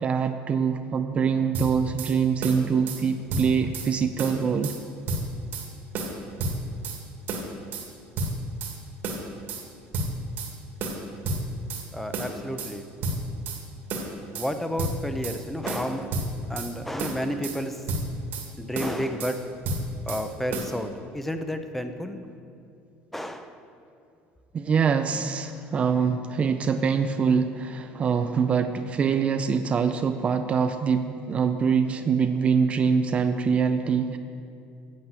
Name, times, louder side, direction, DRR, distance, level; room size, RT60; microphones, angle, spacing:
voice 1, 0.0-4.7 24.5-34.2, right 6 dB, 30° right, 8 dB, 0.4 m, -24 dB
sound 1, 1.5-2.1 2.4-3.0 3.3-3.9 4.2-4.8 5.1-5.7 5.9-7.0 7.3-7.9 8.2-8.8 9.0-9.6 9.9-10.5 10.8-11.9 12.1-12.7 13.0-13.6 13.9-14.5 14.8-15.4 15.7-16.7 17.0-17.6 17.9-18.5 18.7-19.4 19.6-20.2 20.5-20.7, right 2 dB, 55° right, 1.8 m, -31 dB
voice 2, 11.9-12.8 14.3-16.1 16.5-17.8 18.6-19.4 20.1-22.2 23.1-23.5, equal, 5° left, 7 dB, 0.7 m, -31 dB
8.8 x 7.3 x 8.1 m, 2.5 s
cardioid pair, 130°, 4 cm